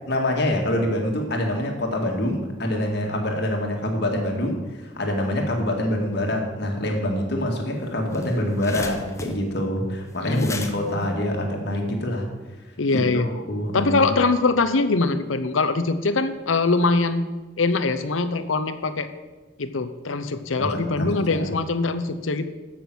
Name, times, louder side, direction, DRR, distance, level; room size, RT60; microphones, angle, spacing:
voice 1, 0.1-12.3 12.9-14.1 20.6-21.5, left 1 dB, 55° left, 1 dB, 2.0 m, -25 dB
sound 1, 7.6-7.7 7.9-12.2, left 3 dB, 15° left, 0.8 m, -38 dB
voice 2, 10.2-10.6 10.9-11.1 12.8-13.3 13.7-17.3 17.6-19.1 19.6-22.5, left 3 dB, 90° left, 11 dB, 0.8 m, -23 dB
14.0 x 6.1 x 6.2 m, 1.3 s
head